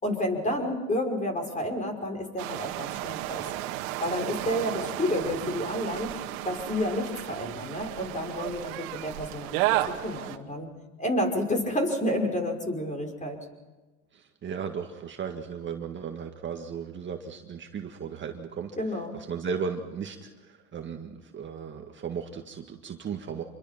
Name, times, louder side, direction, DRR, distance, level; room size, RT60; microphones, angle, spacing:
voice 1, 0.0-3.4 4.0-6.1 6.4-10.7 11.0-13.4 18.8-19.1, left 1 dB, 15° left, 4 dB, 5.6 m, -30 dB
sound 1, 2.4-10.4, right 15 dB, 65° right, 2.1 m, -33 dB
voice 2, 14.1-23.4, right 6 dB, 25° right, 3 dB, 1.9 m, -36 dB
27.5 x 22.5 x 5.9 m, 1.2 s
hypercardioid pair, 105°, 43 cm